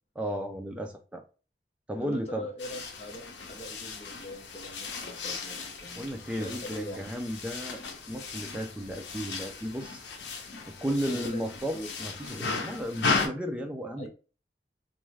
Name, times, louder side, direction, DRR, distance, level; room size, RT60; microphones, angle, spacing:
voice 1, 0.2-1.2 1.9-2.5 6.0-10.0 10.7-14.1, equal, 5° right, 0.4 m, -34 dB
voice 2, 2.0-7.1 11.0-11.5 11.7-12.0 14.0-14.1, equal, 35° left, 0.7 m, -42 dB
sound 1, 2.6-13.3, left 4 dB, 85° left, 0.6 m, -36 dB
2.6 x 2.3 x 3.1 m
head